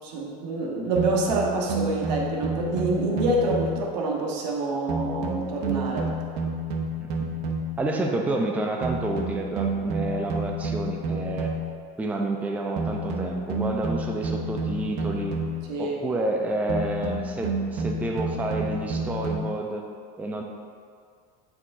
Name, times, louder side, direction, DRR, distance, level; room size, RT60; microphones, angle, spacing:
voice 1, 0.0-6.1 15.7-16.0, right 2 dB, 75° right, -1 dB, 1.2 m, -27 dB
sound 1, 1.0-4.0 4.9-7.9 8.8-11.8 12.8-15.8 16.7-19.4, right 2 dB, 55° right, 0.8 m, -30 dB
voice 2, 7.0-7.3 7.8-11.5 12.0-15.3 15.8-19.9 20.2-20.4, right 2 dB, 5° right, 1 dB, 0.4 m, -29 dB
8.3 x 4.7 x 2.6 m, 2.1 s
supercardioid pair, 125°, 21 cm